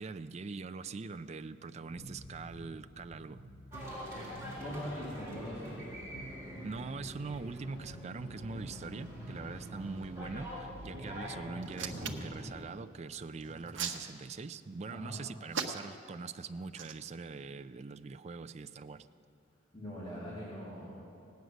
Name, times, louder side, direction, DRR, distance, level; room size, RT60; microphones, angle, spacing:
voice 1, 0.0-3.4 6.6-19.1, right 4 dB, 35° right, 11 dB, 0.4 m, -42 dB
sound 1, 2.0-11.5, equal, 80° left, 1.2 m, -50 dB
sound 2, 3.7-12.6, equal, 15° right, 4.1 m, -46 dB
voice 2, 4.6-5.8 11.8-12.1 13.4-13.6 14.9-15.2 19.7-20.9, equal, 25° left, -10 dB, 3.0 m, -42 dB
Hands, 11.6-12.4 13.4-14.6 15.5-16.1 16.7-16.9, right 7 dB, 80° right, 0.9 m, -37 dB
18.0 x 9.4 x 6.4 m, 2.8 s
head